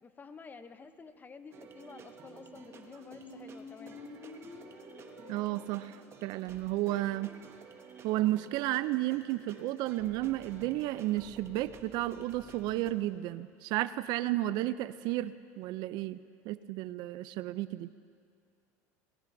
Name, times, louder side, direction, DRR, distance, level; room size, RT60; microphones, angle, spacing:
voice 1, 0.0-4.0, left 4 dB, 20° left, 11 dB, 0.7 m, -51 dB
sound 1, 1.5-12.9, right 6 dB, 35° right, 1.1 m, -53 dB
Squeak, 2.2-8.1, left 4 dB, 55° left, 2.2 m, -52 dB
voice 2, 5.3-6.0 6.2-7.3 8.0-16.2 16.5-17.9, right 16 dB, 60° right, 14 dB, 0.4 m, -32 dB
18.0 x 16.0 x 2.6 m, 2.2 s
supercardioid pair, 110°, 8 cm